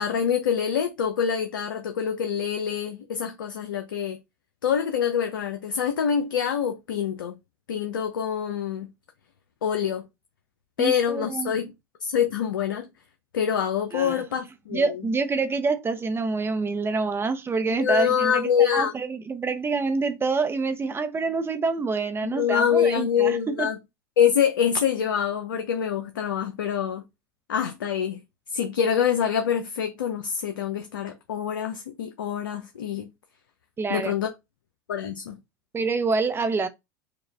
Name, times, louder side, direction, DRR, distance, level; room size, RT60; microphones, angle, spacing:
voice 1, 0.0-4.2 4.6-7.3 7.7-8.9 9.6-10.0 10.8-11.7 12.0-12.9 13.3-15.0 17.7-18.9 22.2-23.8 24.2-27.0 27.5-28.2 28.5-33.1 33.9-34.3 34.9-35.4, left 8 dB, 90° left, 0.6 m, -25 dB
voice 2, 10.8-11.6 13.9-14.2 14.7-23.7 33.8-34.1 35.7-36.7, right 4 dB, 20° right, 0.8 m, -27 dB
5.0 x 2.4 x 3.4 m
hypercardioid pair, 90°, 11 cm